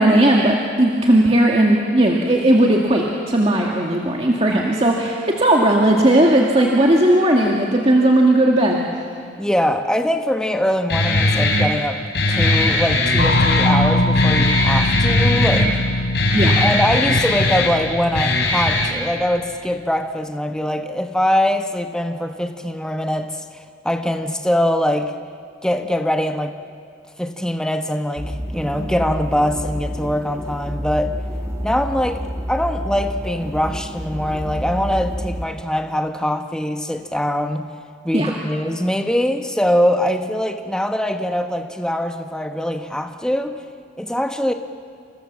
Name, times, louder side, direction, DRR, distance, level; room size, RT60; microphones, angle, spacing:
voice 1, 0.0-8.8 16.3-16.7 38.1-38.3, right 1 dB, 30° right, -1 dB, 2.1 m, -16 dB
voice 2, 9.4-12.0 12.3-15.8 16.5-25.1 25.6-26.6 27.2-31.2 31.6-32.2 32.5-37.7 38.0-43.6 44.0-44.5, left 1 dB, 5° left, 5 dB, 1.1 m, -22 dB
Guitar, 10.9-18.9, left 2 dB, 65° left, 4.6 m, -19 dB
sound 1, 13.2-19.5, left 1 dB, 80° left, 3.8 m, -22 dB
sound 2, 28.2-35.4, equal, 15° right, 2.0 m, -29 dB
29.0 x 27.5 x 7.4 m, 2.3 s
head